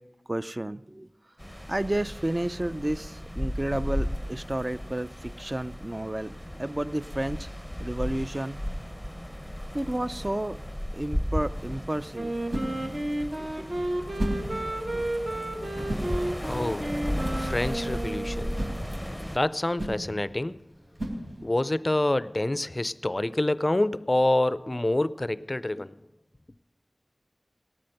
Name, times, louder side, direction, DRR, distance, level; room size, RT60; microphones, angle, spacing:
voice 1, 0.3-1.1 1.7-7.5 7.8-8.6 9.7-10.6 10.9-12.3 13.4-13.7, right 1 dB, 30° right, 0.3 m, -31 dB
sound 1, 1.4-19.4, equal, ahead, 0.7 m, -35 dB
Wind instrument woodwind instrument, 12.1-18.8, right 1 dB, 60° right, 1.4 m, -32 dB
sound 2, 12.4-21.7, right 1 dB, 75° right, 3.6 m, -37 dB
voice 2, 16.5-18.5 19.3-20.6 21.4-26.0, left 1 dB, 40° left, 0.4 m, -27 dB
18.0 x 8.7 x 6.5 m
wide cardioid pair, 50°, 0 cm